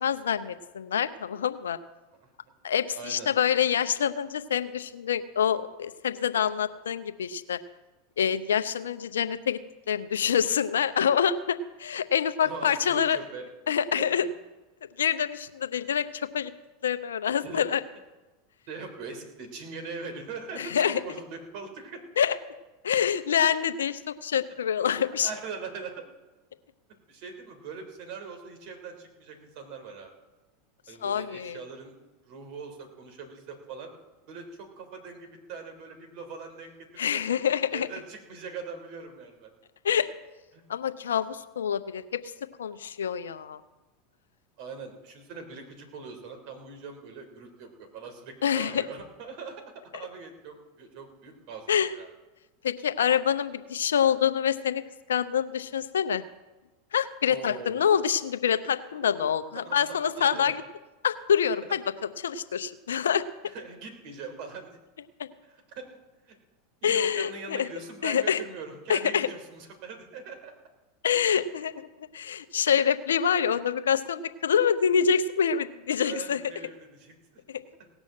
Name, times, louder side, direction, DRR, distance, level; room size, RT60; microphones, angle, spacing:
voice 1, 0.0-1.8 2.6-7.6 8.2-9.6 9.9-13.2 13.7-14.2 15.0-16.1 16.3-16.5 16.8-17.8 20.6-21.0 22.2-22.4 22.8-25.3 31.0-31.6 37.0-37.9 39.8-40.1 40.7-42.2 42.6-43.6 48.4-48.8 51.7-51.9 52.6-54.8 55.1-56.2 56.9-60.6 61.0-63.2 65.2-65.3 66.8-67.7 68.0-68.4 68.9-69.3 71.0-71.9 72.1-76.4 77.5-77.6, left 8 dB, 85° left, 11 dB, 0.6 m, -26 dB
voice 2, 2.9-3.3 12.4-13.5 14.0-14.3 17.4-17.7 18.7-22.0 25.2-26.0 27.1-30.1 30.9-31.9 32.2-33.9 34.3-37.3 37.7-39.5 40.5-40.6 44.6-49.6 49.9-52.1 57.3-57.9 59.5-60.6 61.7-61.8 63.4-64.8 65.5-66.0 66.3-66.4 66.8-70.5 76.0-77.4, right 5 dB, 60° right, 4 dB, 3.3 m, -41 dB
18.0 x 6.3 x 7.5 m, 1.1 s
hypercardioid pair, 95°, 0 cm